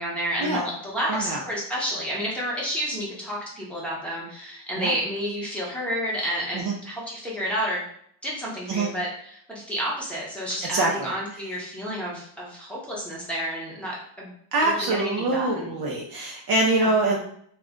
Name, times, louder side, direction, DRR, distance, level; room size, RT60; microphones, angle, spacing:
voice 1, 0.0-7.8 8.2-14.3 14.6-15.7 16.7-17.0, equal, ahead, -6 dB, 0.8 m, -30 dB
voice 2, 1.1-1.4 4.8-4.9 6.5-6.7 8.7-8.9 10.7-11.1 14.5-17.2, right 2 dB, 50° right, -1 dB, 0.5 m, -24 dB
2.4 x 2.2 x 3.5 m, 0.65 s
cardioid pair, 125°, 49 cm